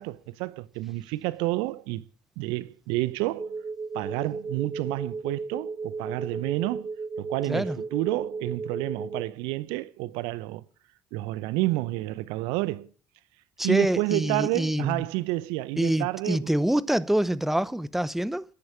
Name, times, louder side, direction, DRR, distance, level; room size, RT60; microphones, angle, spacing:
voice 1, 0.0-2.0 2.4-3.5 3.9-6.9 7.2-10.6 11.1-12.9 13.6-16.5, right 19 dB, 70° right, 0.7 m, -29 dB
sound 1, 3.4-9.3, right 4 dB, 25° right, 1.6 m, -35 dB
voice 2, 7.5-7.8 13.6-15.0 15.8-18.4, right 1 dB, 5° right, 0.8 m, -26 dB
14.0 x 10.5 x 8.4 m
hypercardioid pair, 55°, 9 cm